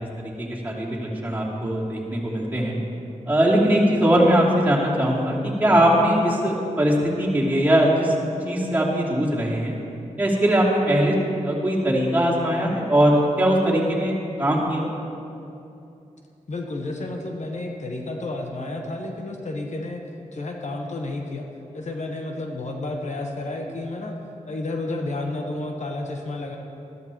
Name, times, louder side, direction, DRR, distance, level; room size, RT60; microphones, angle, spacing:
voice 1, 0.2-2.8 3.3-8.1 8.4-9.7 10.2-11.1 11.4-14.8, right 1 dB, 15° right, -6 dB, 2.9 m, -21 dB
voice 2, 16.5-20.0 20.3-21.5 21.7-24.2 24.5-26.6, left 2 dB, 65° left, 2 dB, 1.2 m, -31 dB
13.5 x 12.5 x 3.1 m, 2.7 s
cardioid pair, 55°, 13 cm